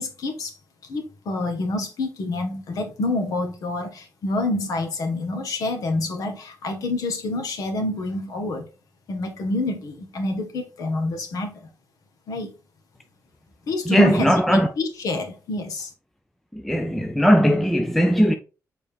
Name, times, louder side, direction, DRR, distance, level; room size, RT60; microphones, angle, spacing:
voice 1, 0.0-8.7 9.1-11.7 12.3-12.5 13.7-15.9, left 2 dB, 70° left, 1.5 m, -28 dB
voice 2, 13.9-14.7 16.5-18.3, equal, 5° left, 0.4 m, -18 dB
6.9 x 4.1 x 3.5 m
wide cardioid pair, 175°, 6 cm